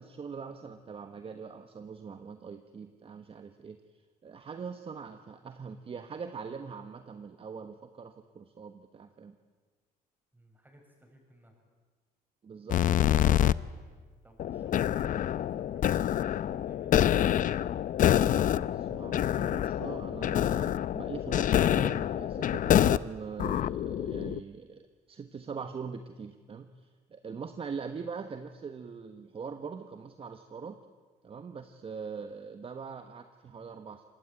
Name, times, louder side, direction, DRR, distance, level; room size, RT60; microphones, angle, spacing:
voice 1, 0.0-3.8 4.2-9.3 12.4-13.1 18.7-30.8 31.2-34.0, right 5 dB, 35° right, 8 dB, 1.3 m, -42 dB
voice 2, 10.3-11.6 13.7-17.5, right 1 dB, 10° right, 1 dB, 7.6 m, -58 dB
sound 1, 12.7-13.5 14.4-23.0 23.4-24.4, left 11 dB, 50° left, 0.7 m, -26 dB
26.0 x 20.0 x 9.1 m, 1.4 s
cardioid pair, 110°, 17 cm